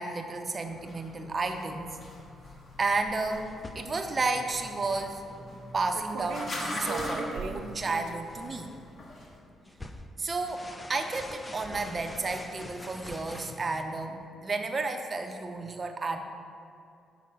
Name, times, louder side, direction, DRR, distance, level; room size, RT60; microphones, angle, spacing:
voice 1, 0.0-2.0 2.8-5.2 5.7-8.7 10.2-10.6 10.9-16.2, right 3 dB, 35° right, 5 dB, 0.6 m, -32 dB
sound 1, 0.7-9.3, left 1 dB, 45° left, 1.2 m, -42 dB
sound 2, 2.1-2.2 2.6-3.6 4.8-4.9 5.9-6.5 6.9-8.1, right 5 dB, 75° right, 0.4 m, -39 dB
sound 3, 2.7-13.8, left 1 dB, 15° left, 0.4 m, -48 dB
6.1 x 3.9 x 5.9 m, 2.5 s
cardioid pair, 90°, 0 cm